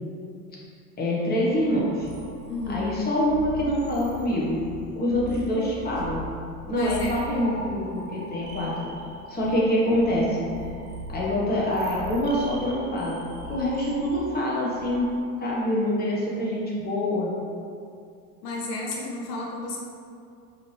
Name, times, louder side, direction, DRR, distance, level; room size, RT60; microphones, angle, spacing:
voice 1, 1.0-2.1 2.7-4.6 4.9-6.2 6.7-8.9 9.3-10.5 11.1-13.2 13.5-15.1 15.4-17.3, left 1 dB, 20° left, -5 dB, 1.1 m, -25 dB
sound 1, 1.5-15.3, equal, 30° right, 0.9 m, -40 dB
voice 2, 2.5-3.0 6.7-7.1 18.4-19.8, left 2 dB, 70° left, -2 dB, 0.9 m, -32 dB
4.9 x 2.9 x 3.2 m, 2.4 s
hypercardioid pair, 85°, 49 cm